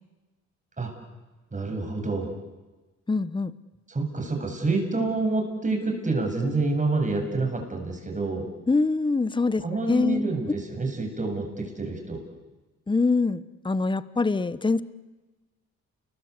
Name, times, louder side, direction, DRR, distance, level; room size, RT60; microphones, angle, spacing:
voice 1, 1.5-2.3 3.9-8.5 9.6-12.2, right 3 dB, 25° right, 3 dB, 7.9 m, -27 dB
voice 2, 3.1-3.5 8.7-10.3 12.9-14.8, left 3 dB, 15° left, 16 dB, 1.0 m, -24 dB
29.5 x 22.0 x 8.4 m, 1.2 s
cardioid pair, 90°, 30 cm